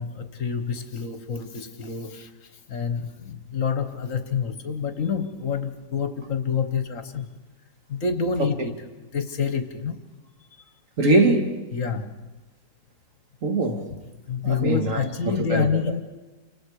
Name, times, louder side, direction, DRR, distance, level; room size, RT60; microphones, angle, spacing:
voice 1, 0.0-7.3 7.9-8.7 9.1-10.0 11.7-12.1 14.3-16.0, left 6 dB, 45° left, 1.5 m, -27 dB
voice 2, 11.0-11.6 13.4-13.9 14.4-15.7, right 2 dB, 40° right, 2.1 m, -22 dB
29.5 x 25.5 x 4.9 m
omnidirectional pair, 2.2 m